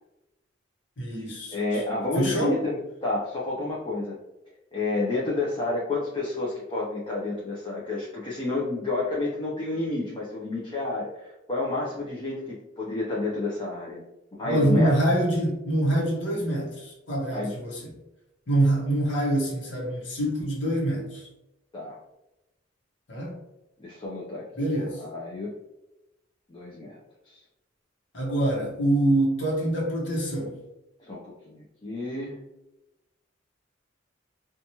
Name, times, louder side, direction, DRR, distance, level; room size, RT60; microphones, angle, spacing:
voice 1, 1.0-1.8 2.1-2.6 14.4-17.9 18.5-21.3 23.1-23.4 24.6-25.0 28.1-30.6, right 1 dB, 70° left, -3 dB, 0.9 m, -25 dB
voice 2, 1.5-4.2 4.7-14.0 14.3-15.0 17.3-17.5 21.7-22.0 23.8-24.4 25.0-25.5 26.5-27.0 27.2-27.4 31.0-32.4, left 2 dB, 25° left, -5 dB, 0.5 m, -30 dB
2.8 x 2.2 x 2.8 m, 0.95 s
head